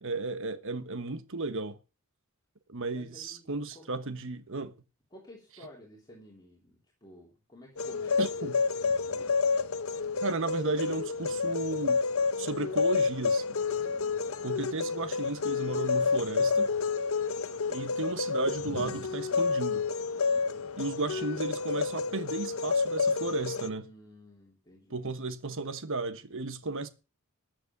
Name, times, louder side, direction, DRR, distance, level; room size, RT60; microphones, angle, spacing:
voice 1, 0.0-1.8 2.7-4.7 8.2-8.6 10.2-12.0 12.4-13.6 14.4-16.7 17.7-19.9 20.8-23.9 24.9-26.9, right 3 dB, 65° right, 1.3 m, -34 dB
voice 2, 2.9-3.9 5.1-8.6 9.1-9.4 14.0-14.4 20.3-20.7 23.8-25.1, left 1 dB, 20° left, 3.2 m, -53 dB
sound 1, 7.8-23.7, left 5 dB, 70° left, 0.9 m, -29 dB
14.0 x 8.1 x 6.0 m
head